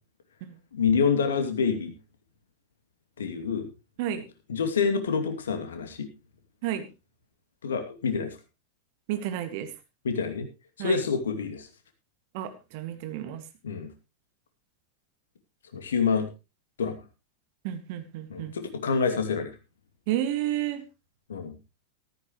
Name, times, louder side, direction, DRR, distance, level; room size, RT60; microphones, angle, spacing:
voice 1, 0.7-1.9 3.2-3.7 4.5-6.1 7.6-8.4 10.0-10.5 10.8-11.7 13.6-13.9 15.7-16.3 16.8-17.0 18.3-19.5 21.3-21.5, left 5 dB, 65° left, 6 dB, 2.6 m, -27 dB
voice 2, 9.1-9.7 10.8-11.0 12.3-13.4 17.6-18.5 20.1-20.8, right 11 dB, 50° right, 9 dB, 2.0 m, -31 dB
14.5 x 14.0 x 3.1 m, 0.28 s
figure-of-eight pair, 90°, 0 cm